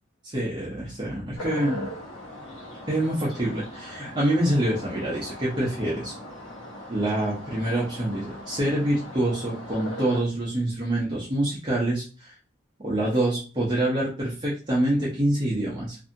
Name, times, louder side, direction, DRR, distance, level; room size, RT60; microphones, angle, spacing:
voice 1, 0.2-1.9 2.9-6.1 6.9-12.3 12.8-16.0, right 1 dB, 25° right, -7 dB, 0.6 m, -26 dB
sound 1, 1.3-10.2, left 1 dB, 80° left, 0.9 m, -40 dB
2.6 x 2.6 x 2.5 m, 0.36 s
head